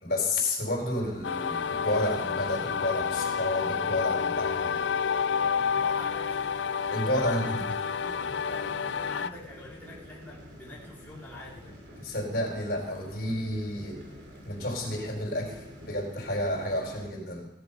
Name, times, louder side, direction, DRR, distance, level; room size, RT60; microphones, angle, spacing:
voice 1, 0.0-4.8 6.9-7.6 12.0-14.0 14.4-17.5, left 1 dB, 60° left, 0 dB, 4.8 m, -31 dB
sound 1, 0.7-17.1, equal, 85° right, 4.3 m, -48 dB
sound 2, 1.2-9.3, left 6 dB, 80° left, 0.4 m, -29 dB
voice 2, 5.7-6.4 7.2-8.8 9.0-11.8, left 1 dB, 10° left, -6 dB, 2.8 m, -46 dB
17.5 x 11.0 x 5.5 m, 0.90 s
head